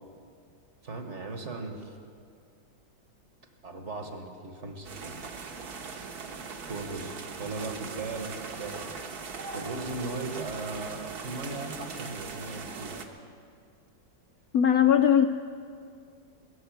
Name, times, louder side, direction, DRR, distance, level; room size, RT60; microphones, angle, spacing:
voice 1, 0.8-2.0 3.6-5.2 5.6-6.1 6.7-13.0, right 3 dB, 45° right, 4 dB, 1.4 m, -38 dB
sound 1, 4.8-13.0, right 5 dB, 60° right, 1.6 m, -40 dB
voice 2, 14.5-15.3, left 9 dB, 75° left, 8 dB, 0.8 m, -19 dB
20.0 x 7.8 x 9.2 m, 2.3 s
omnidirectional pair, 2.0 m